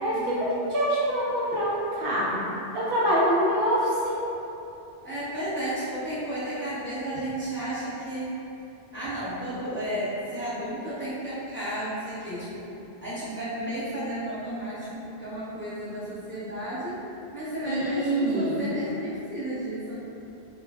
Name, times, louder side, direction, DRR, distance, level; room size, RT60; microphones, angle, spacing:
voice 1, 0.7-4.2 17.6-18.7, equal, 65° right, -8 dB, 0.7 m, -25 dB
voice 2, 5.0-8.3 8.9-12.7 13.0-17.0 17.3-19.9, right 1 dB, 15° left, -14 dB, 0.7 m, -33 dB
3.2 x 2.3 x 2.3 m, 2.8 s
omnidirectional pair, 1.1 m